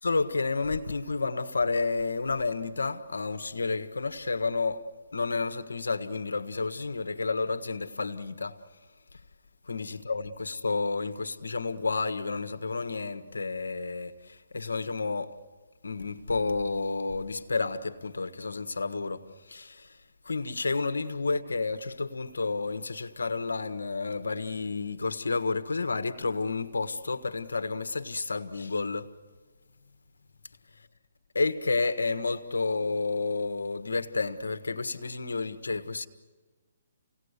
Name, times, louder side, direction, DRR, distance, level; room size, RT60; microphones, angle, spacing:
voice 1, 0.0-4.9 5.1-8.6 9.7-15.4 15.8-20.0 20.2-29.1 31.3-36.1, left 3 dB, 90° left, 1.5 m, -30 dB
29.5 x 18.5 x 8.3 m
hypercardioid pair, 150°, 0 cm